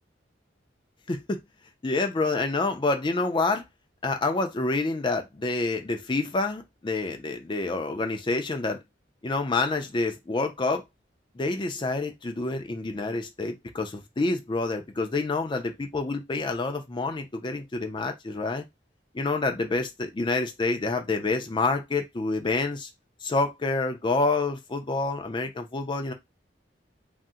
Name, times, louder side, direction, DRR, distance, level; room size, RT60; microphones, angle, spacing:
voice 1, 1.1-1.4 1.8-3.6 4.0-8.8 9.2-10.8 11.3-18.6 19.1-22.9 23.2-26.1, left 3 dB, 25° left, 0.4 m, -28 dB
2.7 x 2.1 x 3.6 m
head